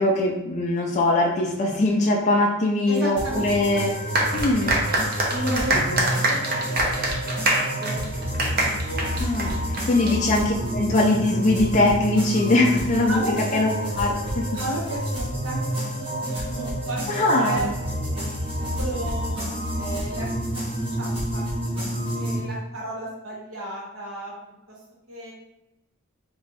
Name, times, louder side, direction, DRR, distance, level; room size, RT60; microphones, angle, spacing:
voice 1, 0.0-3.9 4.3-4.8 5.7-6.1 9.2-13.2 13.5-13.7 14.0-14.4 17.1-17.7, left 2 dB, 35° left, -1 dB, 0.4 m, -22 dB
voice 2, 2.9-3.9 5.3-5.8 6.3-7.0 7.7-8.2 8.5-9.1 9.9-10.0 13.0-13.6 14.5-17.1 17.3-17.7 18.1-18.4 18.8-19.5 19.8-20.3 20.7-21.4 22.2-24.3 25.1-25.3, right 1 dB, 65° right, -3 dB, 1.1 m, -33 dB
sound 1, 3.2-22.4, equal, 25° right, 1.3 m, -29 dB
sound 2, 4.1-10.1, right 2 dB, 45° right, 0.7 m, -24 dB
3.1 x 2.6 x 4.0 m, 0.95 s
head